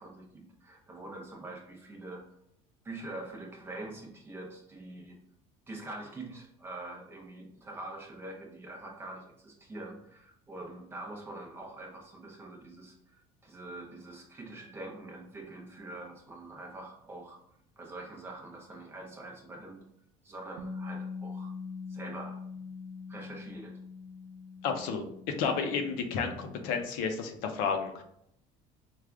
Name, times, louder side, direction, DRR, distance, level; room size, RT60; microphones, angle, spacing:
voice 1, 0.0-2.3 2.8-5.2 5.7-17.4 17.8-19.9 20.2-21.5 21.9-22.4 23.1-23.8, right 2 dB, 15° right, 0 dB, 0.6 m, -44 dB
Bass guitar, 20.6-26.8, left 4 dB, 75° right, 0.7 m, -43 dB
voice 2, 24.6-25.0 25.4-28.0, left 5 dB, 80° left, 5 dB, 0.6 m, -31 dB
4.9 x 2.3 x 3.4 m, 0.74 s
cardioid pair, 175°, 15 cm